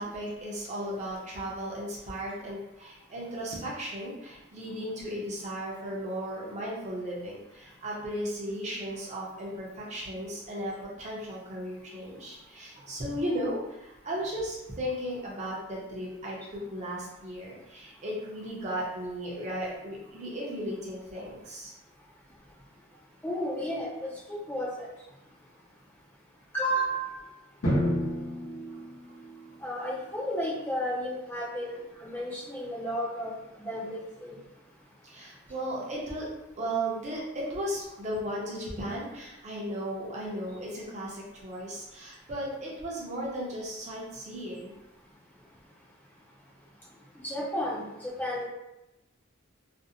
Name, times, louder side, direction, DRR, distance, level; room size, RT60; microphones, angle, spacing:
voice 1, 0.0-21.7 35.0-36.3 36.6-44.7, equal, 35° right, -4 dB, 0.6 m, -35 dB
voice 2, 23.2-23.9 24.3-24.9 26.5-27.1 29.6-33.3 33.7-34.3 47.2-48.4, equal, 10° left, -6 dB, 0.4 m, -32 dB
Drum, 27.6-29.6, equal, 80° left, 0.9 m, -30 dB
2.5 x 2.0 x 2.7 m, 0.93 s
head